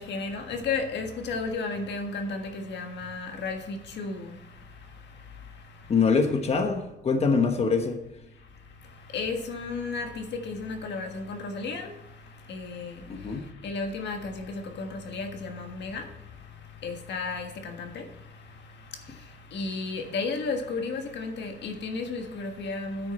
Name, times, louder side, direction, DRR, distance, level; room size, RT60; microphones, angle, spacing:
voice 1, 0.0-4.4 9.0-12.0 12.4-16.1 16.8-18.1 19.0-23.1, left 4 dB, 85° left, 1.6 m, -33 dB
voice 2, 5.9-8.0 13.1-13.5, left 5 dB, 35° left, 1.1 m, -24 dB
9.8 x 8.3 x 4.2 m
wide cardioid pair, 165°, 18 cm